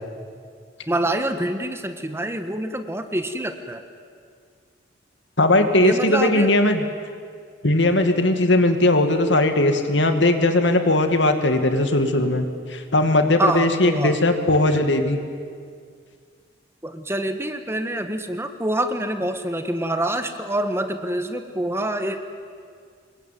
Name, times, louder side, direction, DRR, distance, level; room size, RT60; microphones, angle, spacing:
voice 1, 0.9-3.8 5.8-6.6 13.4-14.2 16.8-22.2, right 1 dB, 15° right, 8 dB, 1.5 m, -26 dB
voice 2, 5.4-6.8 7.6-15.2, left 2 dB, 70° left, 7 dB, 2.4 m, -19 dB
26.5 x 22.5 x 9.4 m, 2.1 s
head